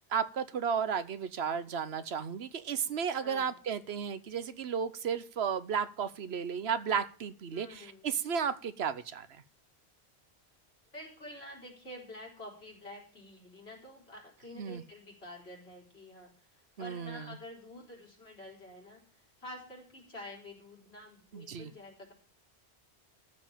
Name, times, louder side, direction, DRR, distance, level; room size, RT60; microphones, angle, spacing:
voice 1, 0.1-9.3 14.6-14.8 16.8-17.2 21.3-21.7, right 7 dB, 75° right, 13 dB, 1.1 m, -33 dB
voice 2, 3.2-3.6 7.5-8.1 10.9-22.1, left 1 dB, 70° left, -2 dB, 4.5 m, -48 dB
14.0 x 5.3 x 8.8 m, 0.41 s
omnidirectional pair, 1.1 m